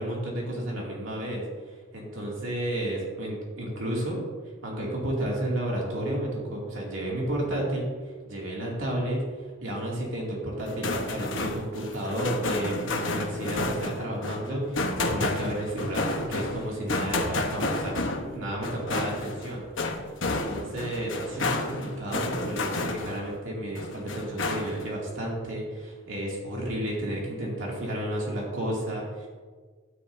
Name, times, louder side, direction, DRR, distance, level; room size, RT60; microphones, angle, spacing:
voice 1, 0.0-4.2 4.6-18.0 18.3-19.7 20.2-29.3, right 1 dB, 85° right, -4 dB, 2.4 m, -32 dB
sound 1, 10.6-23.4 23.7-24.9, left 2 dB, 75° left, 1.0 m, -31 dB
12.5 x 10.0 x 2.6 m, 1.5 s
head